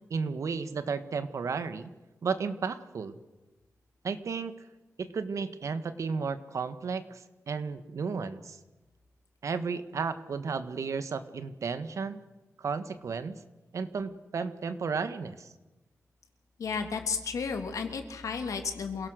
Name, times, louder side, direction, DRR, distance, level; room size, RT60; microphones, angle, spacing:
voice 1, 0.0-1.9 2.2-3.2 4.0-4.5 5.0-8.6 9.4-12.2 12.6-13.4 13.7-15.5, right 5 dB, 70° right, 11 dB, 1.6 m, -33 dB
voice 2, 16.6-19.1, left 5 dB, 85° left, 6 dB, 3.1 m, -33 dB
27.5 x 17.5 x 6.5 m, 1.1 s
wide cardioid pair, 100°, 5 cm